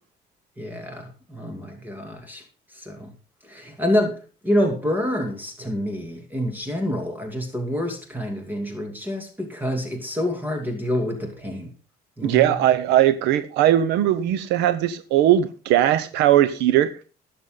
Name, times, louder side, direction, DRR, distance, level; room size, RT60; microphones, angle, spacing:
voice 1, 0.6-2.4 2.7-3.1 3.4-4.2 4.4-11.7 12.2-12.6, equal, 10° right, 2.6 m, -27 dB
voice 2, 12.2-16.9, right 12 dB, 90° right, 0.9 m, -19 dB
20.5 x 7.2 x 3.9 m
cardioid pair, 110°, 17 cm